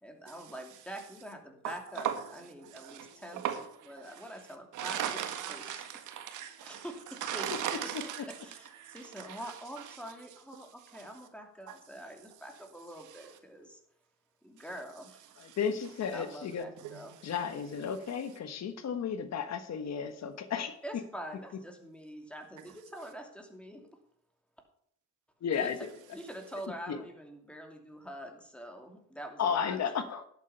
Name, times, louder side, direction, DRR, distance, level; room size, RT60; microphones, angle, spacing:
voice 1, 0.0-3.4 3.9-5.0 5.5-5.8 6.6-7.6 8.3-13.8 14.4-15.3 16.1-17.2 20.8-23.8 25.5-25.7 26.1-29.9, equal, 5° left, 2.7 m, -45 dB
voice 2, 1.6-2.3 2.6-4.3 4.7-10.0 10.9-11.1 11.7-11.8 13.0-13.3 15.4-15.6 16.8-17.3, right 9 dB, 85° right, 1.6 m, -39 dB
voice 3, 15.6-16.7 17.2-20.7 25.4-25.9 26.9-27.0 29.4-30.2, left 7 dB, 60° left, 1.3 m, -33 dB
11.5 x 8.4 x 5.7 m
cardioid pair, 90°, 30 cm